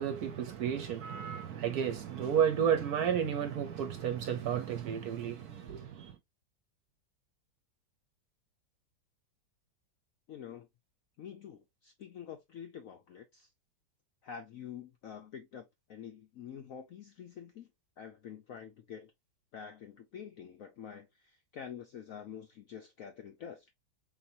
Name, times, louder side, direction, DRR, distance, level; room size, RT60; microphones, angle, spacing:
voice 1, 0.0-6.2, right 8 dB, 65° right, 1.1 m, -32 dB
voice 2, 10.3-10.7 11.2-13.5 14.2-17.7 18.0-19.1 19.5-23.6, left 8 dB, 70° left, 0.8 m, -47 dB
4.2 x 3.7 x 2.7 m
omnidirectional pair, 2.1 m